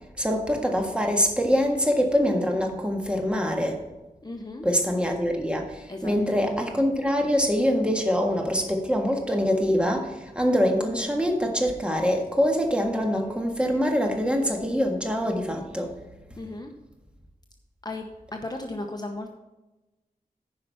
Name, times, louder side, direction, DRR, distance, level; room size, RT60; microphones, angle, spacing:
voice 1, 0.2-3.8 4.6-15.9, equal, 5° right, 2 dB, 1.6 m, -24 dB
voice 2, 4.2-4.7 5.9-6.1 16.4-16.7 17.8-18.0 18.3-19.3, left 2 dB, 25° left, 3 dB, 0.9 m, -35 dB
9.9 x 5.5 x 5.6 m, 1.1 s
wide cardioid pair, 65°, 15 cm